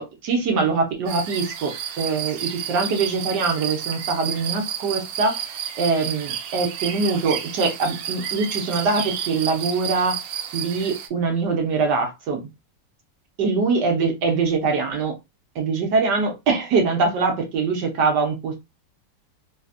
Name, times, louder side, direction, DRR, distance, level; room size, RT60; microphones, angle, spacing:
voice 1, 0.0-10.2 10.5-12.5 13.4-15.2 15.5-18.6, right 4 dB, 70° right, 1.5 m, -23 dB
sound 1, 1.1-11.1, right 8 dB, 90° right, 1.3 m, -31 dB
3.3 x 2.8 x 2.3 m
omnidirectional pair, 2.0 m